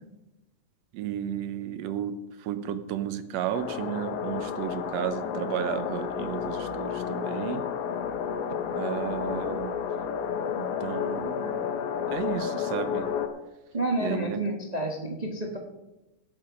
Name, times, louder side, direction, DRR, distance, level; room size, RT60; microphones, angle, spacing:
voice 1, 0.9-7.6 8.8-9.7 10.6-11.7 12.1-13.1 14.0-14.4, right 10 dB, 70° right, 11 dB, 1.9 m, -33 dB
sound 1, 3.5-13.3, left 7 dB, 90° left, 2.4 m, -31 dB
voice 2, 13.7-15.6, right 1 dB, 90° right, 0 dB, 0.3 m, -29 dB
17.0 x 7.4 x 5.2 m, 1.0 s
omnidirectional pair, 3.4 m